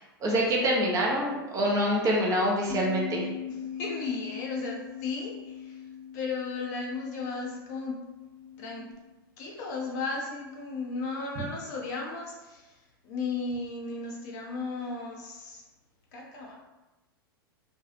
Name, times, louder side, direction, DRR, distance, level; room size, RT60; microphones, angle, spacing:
voice 1, 0.2-3.3, equal, 25° right, -2 dB, 0.6 m, -26 dB
Bass guitar, 2.7-8.9, left 8 dB, 45° right, 1.1 m, -41 dB
voice 2, 3.7-5.8 6.1-8.0 8.6-8.9 9.4-12.8 13.0-15.6 16.1-16.6, left 3 dB, 50° left, -1 dB, 0.6 m, -35 dB
2.3 x 2.1 x 2.9 m, 1.1 s
figure-of-eight pair, 95°, 12 cm